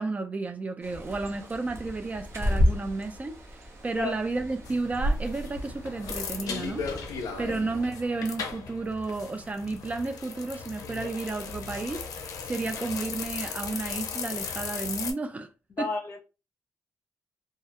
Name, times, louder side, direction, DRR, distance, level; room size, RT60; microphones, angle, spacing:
voice 1, 0.0-6.8 7.4-12.0 12.4-15.5 15.8-15.9, right 3 dB, 25° right, 0.3 m, -32 dB
Bird, 0.8-7.9, left 1 dB, 50° right, 0.8 m, -33 dB
sound 1, 4.6-15.1, left 3 dB, 85° left, 0.4 m, -35 dB
voice 2, 15.8-16.2, left 3 dB, 45° left, 0.6 m, -32 dB
2.2 x 2.1 x 2.8 m
cardioid pair, 115°, 6 cm